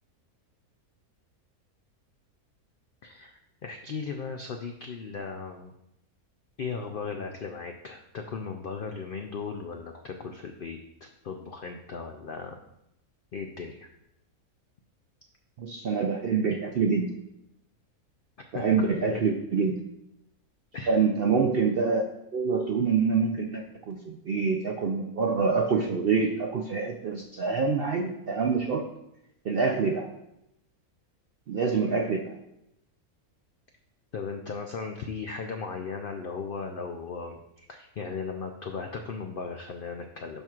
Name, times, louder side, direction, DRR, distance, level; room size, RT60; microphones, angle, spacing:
voice 1, 3.0-5.7 6.6-12.6 13.3-13.9 18.5-19.3 20.7-21.0 34.1-40.4, left 5 dB, 90° left, 4 dB, 0.4 m, -37 dB
voice 2, 15.6-17.2 18.5-19.7 20.9-22.1 22.3-28.8 29.4-30.1 31.5-32.4, right 5 dB, 70° right, 3 dB, 0.5 m, -26 dB
12.0 x 4.4 x 2.4 m, 0.82 s
omnidirectional pair, 1.6 m